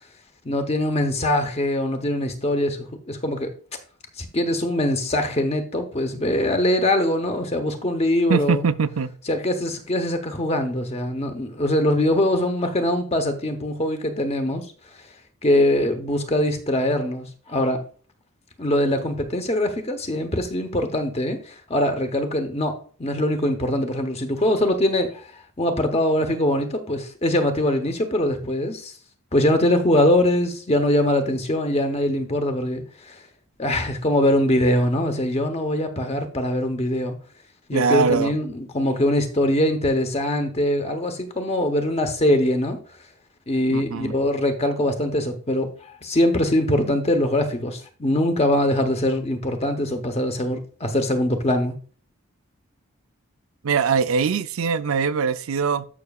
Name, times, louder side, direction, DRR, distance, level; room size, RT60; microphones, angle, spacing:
voice 1, 0.4-3.5 4.2-8.7 9.3-14.7 15.4-17.8 18.6-25.3 25.6-28.9 29.3-33.2 33.6-37.2 37.7-42.8 43.5-51.7, left 1 dB, 30° left, 0.9 m, -22 dB
voice 2, 8.3-9.1 37.7-38.3 43.7-44.1 53.6-55.9, right 5 dB, 75° right, 0.5 m, -22 dB
12.5 x 5.9 x 2.4 m
head